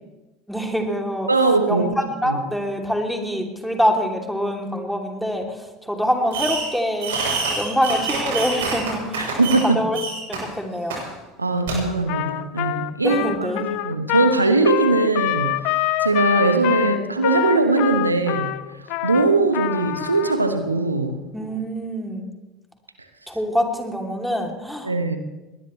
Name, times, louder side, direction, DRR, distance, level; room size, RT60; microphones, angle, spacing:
voice 1, 0.5-1.3 1.7-1.9 2.2-7.2 7.6-9.4 9.7-10.0 10.3-11.0 13.0-13.8 21.3-22.3 23.3-24.9, equal, ahead, 2 dB, 3.0 m, -25 dB
voice 2, 1.3-1.9 2.2-2.4 9.2-9.8 11.4-18.5 19.0-21.2 24.8-25.2, right 3 dB, 90° right, 8 dB, 1.2 m, -20 dB
Fireworks, 6.3-6.7 7.0-9.7 9.9-10.4 10.9-11.0 11.7-11.8, right 4 dB, 70° right, 7.3 m, -26 dB
Trumpet, 12.1-20.3, left 16 dB, 55° left, 0.7 m, -25 dB
21.5 x 19.5 x 3.3 m, 1.1 s
figure-of-eight pair, 70°, 0 cm